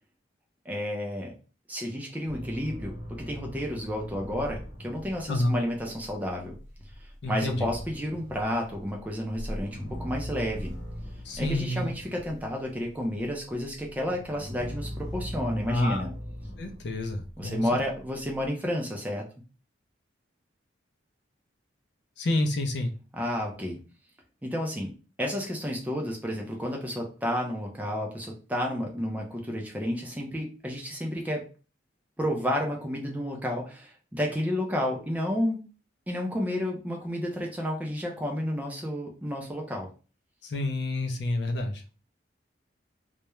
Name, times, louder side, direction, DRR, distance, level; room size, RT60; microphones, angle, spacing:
voice 1, 0.7-1.3 1.7-6.5 7.0-10.7 11.4-16.1 17.4-19.3 23.1-23.8 24.4-24.9 25.2-31.4 32.2-35.6 36.1-39.9, equal, 10° right, 0 dB, 0.4 m, -31 dB
sound 1, 2.3-12.5 12.8-18.5, equal, 80° left, 0.8 m, -40 dB
voice 2, 5.3-5.6 7.2-7.7 11.2-11.9 15.7-16.0 16.6-17.7 22.2-22.9 40.4-41.8, left 1 dB, 60° left, 4 dB, 0.4 m, -29 dB
2.3 x 2.0 x 2.9 m, 0.36 s
head